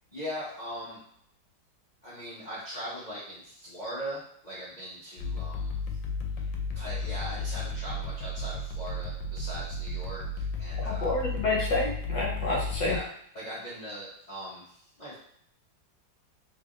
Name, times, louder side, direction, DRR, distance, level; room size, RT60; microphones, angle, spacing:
voice 1, 0.1-1.0 2.0-5.8 6.4-11.1 12.8-13.0 13.3-15.1, equal, 35° left, -9 dB, 0.7 m, -40 dB
sound 1, 5.2-13.0, left 2 dB, 85° left, 1.3 m, -33 dB
voice 2, 10.8-13.0, left 2 dB, 70° left, -4 dB, 1.5 m, -29 dB
3.5 x 3.3 x 2.5 m, 0.69 s
omnidirectional pair, 2.0 m